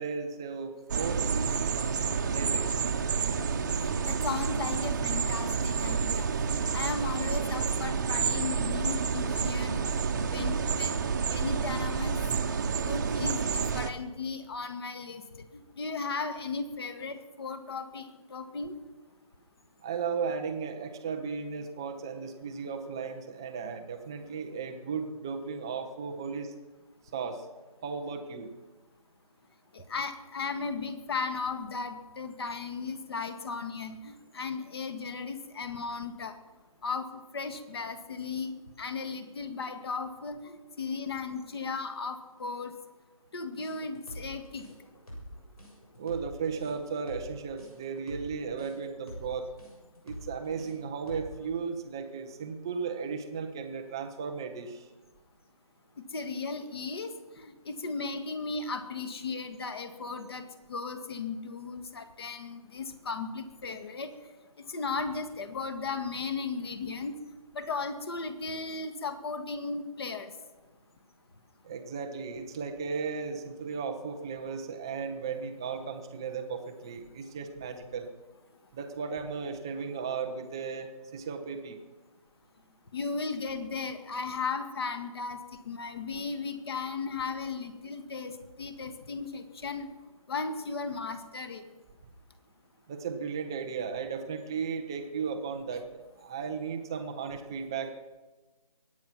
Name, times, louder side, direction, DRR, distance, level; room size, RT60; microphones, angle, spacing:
voice 1, 0.0-1.8 2.2-2.7 19.8-26.5 27.1-27.4 27.8-28.5 46.0-49.5 50.0-54.9 71.6-78.1 78.7-81.8 92.9-98.0, right 5 dB, 5° right, 5 dB, 0.4 m, -35 dB
sound 1, 0.9-13.9, right 6 dB, 30° right, 0.9 m, -29 dB
voice 2, 3.8-11.0 11.3-12.2 12.8-15.5 15.8-18.8 29.7-36.4 36.8-42.7 43.3-44.7 56.0-64.1 64.6-67.1 67.5-70.3 82.9-89.9 90.3-91.6, left 4 dB, 40° left, 9 dB, 1.7 m, -36 dB
sound 2, 43.6-51.4, equal, 75° left, 7.2 m, -45 dB
23.0 x 9.4 x 5.8 m, 1.2 s
figure-of-eight pair, 160°, 19 cm